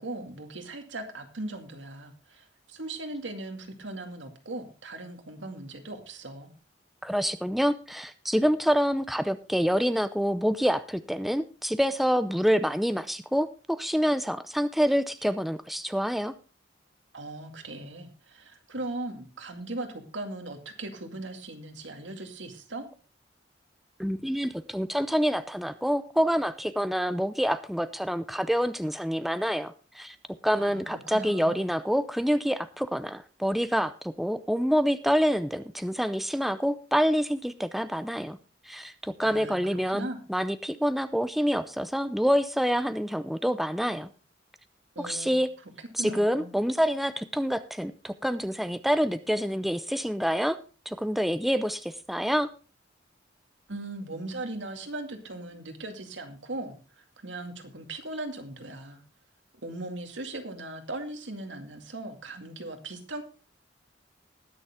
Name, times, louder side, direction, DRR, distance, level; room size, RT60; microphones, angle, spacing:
voice 1, 0.0-6.5 17.1-22.9 30.6-31.7 39.2-40.2 45.0-45.3 45.8-46.5 53.7-59.0 59.6-63.2, right 2 dB, 80° right, 5 dB, 2.1 m, -39 dB
voice 2, 7.0-16.3 24.0-30.2 30.4-38.4 38.7-44.1 45.0-45.5 45.9-50.6 50.9-52.5, equal, ahead, 11 dB, 0.5 m, -27 dB
20.5 x 6.8 x 3.6 m, 0.34 s
head